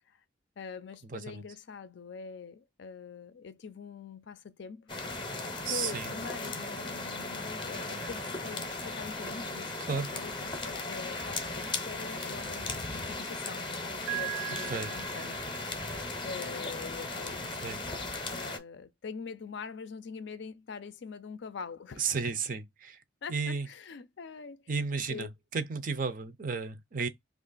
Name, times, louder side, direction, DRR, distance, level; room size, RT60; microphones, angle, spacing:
voice 1, 0.6-4.9 5.6-13.7 14.1-15.5 16.2-17.5 18.3-22.1 23.2-25.3, left 5 dB, 60° left, 0.4 m, -44 dB
voice 2, 1.1-1.4 5.6-6.1 9.9-10.1 14.7-14.9 17.6-17.8 22.0-23.0 23.3-23.7 24.7-27.1, right 5 dB, 45° right, 0.5 m, -33 dB
sound 1, 4.9-18.6, left 3 dB, 25° left, 0.7 m, -37 dB
Piano, 14.1-16.0, right 20 dB, 80° right, 0.9 m, -39 dB
2.9 x 2.4 x 3.8 m
head